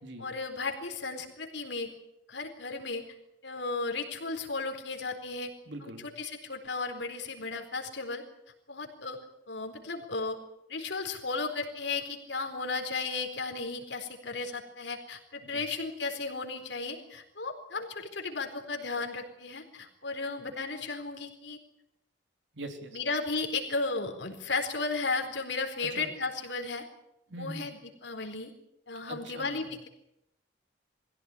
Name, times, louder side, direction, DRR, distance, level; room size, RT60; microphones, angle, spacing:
voice 1, 0.2-1.9 2.3-3.0 3.4-5.5 5.8-8.2 8.7-9.2 9.5-10.4 10.7-21.6 22.9-26.8 27.4-28.5 28.9-29.9, left 3 dB, 70° left, 4 dB, 4.2 m, -35 dB
voice 2, 5.7-6.0 15.4-15.6 22.5-23.0 26.0-26.1 27.3-27.7 29.1-29.9, right 1 dB, 75° right, 5 dB, 3.3 m, -42 dB
22.0 x 16.0 x 9.7 m, 0.83 s
head